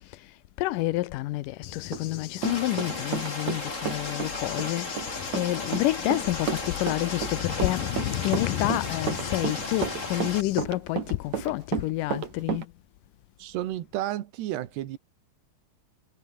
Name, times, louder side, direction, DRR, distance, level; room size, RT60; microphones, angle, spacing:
voice 1, 0.1-7.9 8.2-12.7, left 17 dB, 80° left, 1.9 m, -29 dB
Cricket / Thunder, 1.6-10.6, left 12 dB, 65° left, 2.9 m, -37 dB
Run, 1.9-3.6 3.9-12.6, right 8 dB, 50° right, 3.2 m, -32 dB
Rain, 2.4-10.4, left 2 dB, 15° left, 6.5 m, -36 dB
voice 2, 13.4-15.0, right 13 dB, 85° right, 3.6 m, -32 dB
omnidirectional pair, 4.7 m